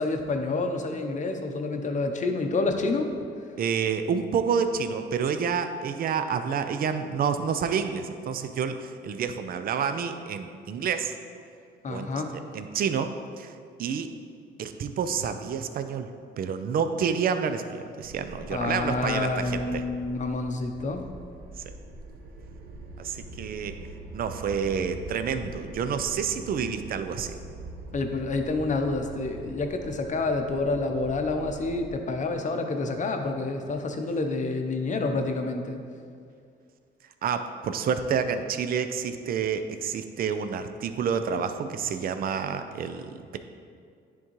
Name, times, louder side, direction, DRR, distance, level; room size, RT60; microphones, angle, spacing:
voice 1, 0.0-3.1 11.8-12.4 18.5-21.1 27.9-35.8, left 3 dB, 40° left, 5 dB, 0.7 m, -28 dB
voice 2, 3.6-11.1 11.9-12.1 12.5-13.5 13.8-14.1 14.6-16.1 16.4-19.8 21.7-21.8 23.0-23.8 24.1-27.4 37.2-43.4, right 6 dB, 50° right, 9 dB, 0.4 m, -29 dB
sound 1, 18.0-31.9, right 2 dB, 85° right, 0.7 m, -43 dB
9.8 x 3.7 x 3.1 m, 2.3 s
cardioid pair, 90°, 20 cm